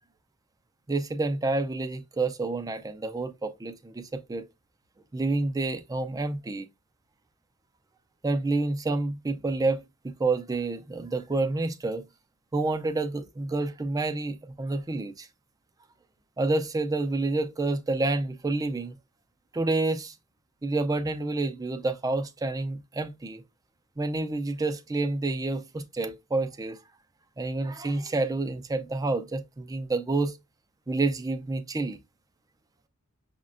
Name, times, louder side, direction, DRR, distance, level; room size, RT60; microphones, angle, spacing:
voice 1, 0.9-4.5 5.1-6.7 8.2-9.8 10.2-12.0 12.5-15.3 16.4-19.0 19.5-20.2 20.6-23.4 24.0-26.8 27.4-30.4 30.9-32.0, right 2 dB, 15° right, 0.3 m, -28 dB
6.3 x 2.1 x 2.4 m
head